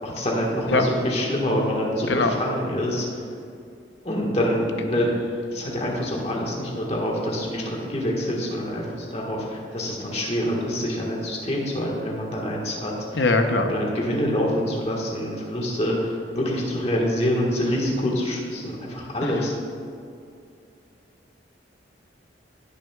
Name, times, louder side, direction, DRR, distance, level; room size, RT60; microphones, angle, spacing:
voice 1, 0.0-3.2 4.0-5.1 5.5-13.2 13.7-19.5, equal, 35° left, -2 dB, 1.5 m, -26 dB
voice 2, 13.1-13.7 19.2-19.3, left 3 dB, 75° left, 5 dB, 0.8 m, -21 dB
17.5 x 6.2 x 2.4 m, 2.4 s
head